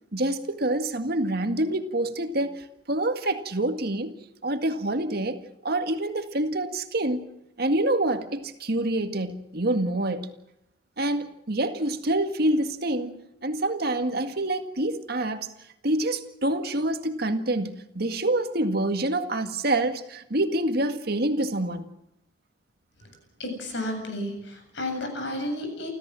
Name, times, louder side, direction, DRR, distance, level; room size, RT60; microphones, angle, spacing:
voice 1, 0.1-7.3 7.6-10.3 11.0-13.2 13.4-15.5 15.8-21.8, right 1 dB, 55° right, 1.9 m, -27 dB
voice 2, 23.4-25.9, left 1 dB, 65° left, 7.8 m, -32 dB
29.0 x 14.0 x 7.6 m
head